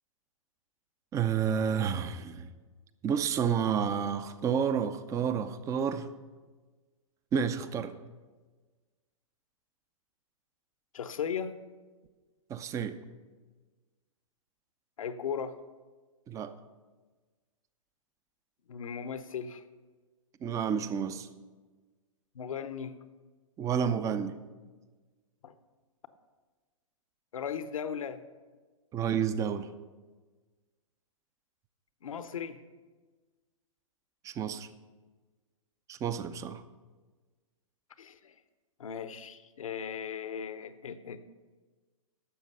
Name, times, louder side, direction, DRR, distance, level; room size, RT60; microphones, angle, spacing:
voice 1, 1.1-2.5 3.0-6.1 7.3-7.9 12.5-13.0 16.3-16.5 20.4-21.3 23.6-24.4 28.9-29.7 34.2-34.7 35.9-36.6, right 7 dB, 15° right, 13 dB, 0.5 m, -30 dB
voice 2, 10.9-11.5 15.0-15.6 18.7-19.6 22.3-23.0 25.4-25.5 27.3-28.2 32.0-32.6 38.0-38.3 38.8-41.2, left 7 dB, 75° left, 12 dB, 0.8 m, -37 dB
11.5 x 7.2 x 5.5 m, 1.3 s
hypercardioid pair, 120°, 18 cm